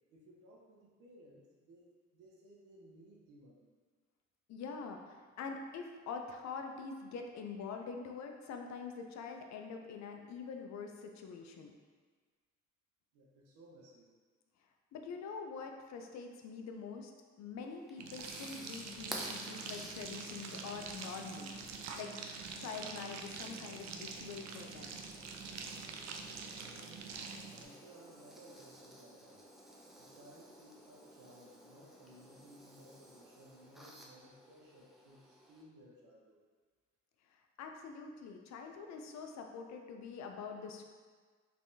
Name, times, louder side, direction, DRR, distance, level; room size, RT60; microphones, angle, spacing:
voice 1, 0.1-3.7 13.1-14.1 26.4-27.1 27.6-29.5 30.0-36.4, right 1 dB, 85° right, -2 dB, 0.8 m, -59 dB
voice 2, 4.5-11.7 14.9-17.1 17.4-21.6 22.0-22.1 22.6-25.0 37.6-40.9, left 5 dB, 65° left, 4 dB, 0.5 m, -45 dB
sound 1, 17.6-35.6, equal, ahead, 0.5 m, -53 dB
sound 2, 18.0-27.6, right 5 dB, 60° right, 0.4 m, -45 dB
3.4 x 3.3 x 2.7 m, 1.5 s
cardioid pair, 90°, 30 cm